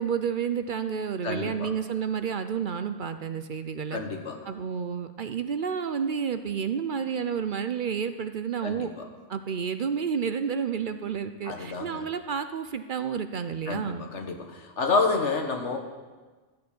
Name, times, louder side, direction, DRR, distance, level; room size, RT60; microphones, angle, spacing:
voice 1, 0.0-4.0 4.5-8.9 9.3-14.1, right 7 dB, 55° right, 10 dB, 0.7 m, -30 dB
voice 2, 1.2-1.7 3.9-4.4 8.6-8.9 11.4-12.0 13.7-15.8, left 4 dB, 85° left, 4 dB, 1.7 m, -29 dB
13.5 x 6.7 x 8.5 m, 1.3 s
omnidirectional pair, 1.2 m